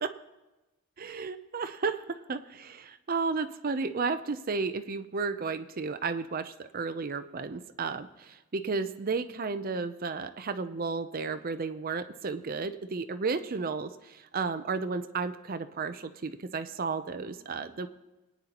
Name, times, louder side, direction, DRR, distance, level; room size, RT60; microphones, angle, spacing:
voice 1, 1.0-17.9, right 4 dB, 40° right, 10 dB, 0.5 m, -33 dB
22.0 x 9.3 x 3.0 m, 1.1 s
head